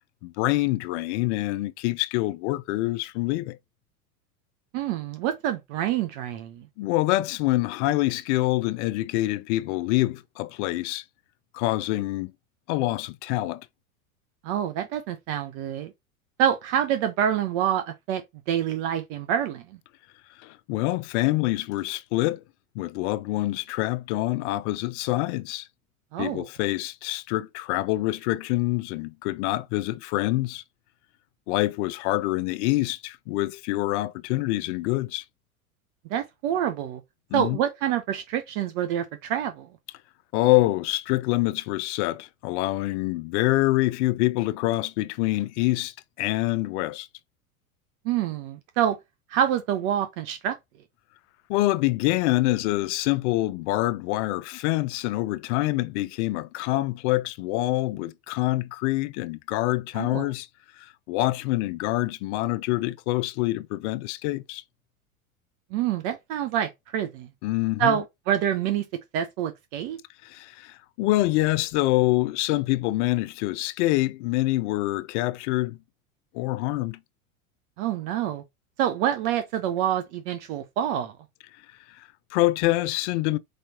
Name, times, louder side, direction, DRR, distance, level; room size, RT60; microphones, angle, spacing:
voice 1, 0.2-3.6 6.8-11.0 11.5-12.3 12.7-13.7 20.4-22.4 22.7-25.7 26.2-30.6 31.5-35.2 37.3-37.6 40.3-47.1 51.5-60.5 60.8-64.6 67.4-68.0 70.2-75.8 76.3-77.0 81.9-83.4, left 18 dB, 50° left, 0.6 m, -26 dB
voice 2, 4.7-6.6 14.4-15.9 16.4-19.6 26.1-26.5 36.1-37.0 37.3-39.7 48.0-49.0 49.3-50.6 59.9-60.3 65.7-67.3 67.8-68.9 69.1-70.0 77.8-78.4 78.8-81.1, right 10 dB, 50° right, 0.8 m, -27 dB
4.8 x 3.0 x 2.8 m
hypercardioid pair, 90°, 44 cm